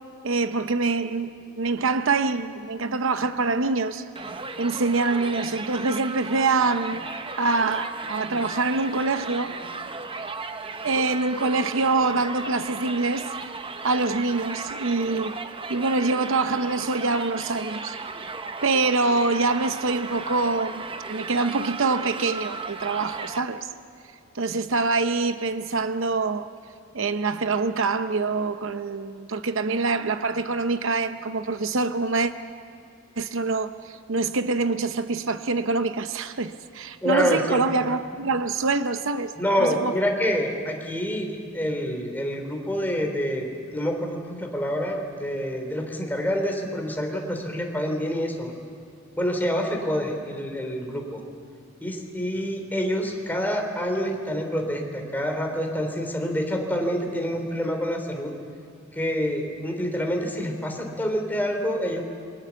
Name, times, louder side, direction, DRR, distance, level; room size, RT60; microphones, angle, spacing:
voice 1, 0.2-1.3 1.6-4.0 4.6-7.0 7.4-9.6 10.8-13.2 13.8-15.4 15.7-18.0 18.6-23.7 24.3-26.5 26.9-32.3 33.2-39.3 39.6-39.9, right 3 dB, 65° right, 0.8 m, -25 dB
Crowd, 4.2-23.4, right 4 dB, 25° right, 0.9 m, -35 dB
voice 2, 37.0-37.9 39.4-43.5 43.7-48.5 49.2-51.2 51.8-58.3 58.9-62.0, equal, 10° left, 3.5 m, -27 dB
28.0 x 23.0 x 7.1 m
head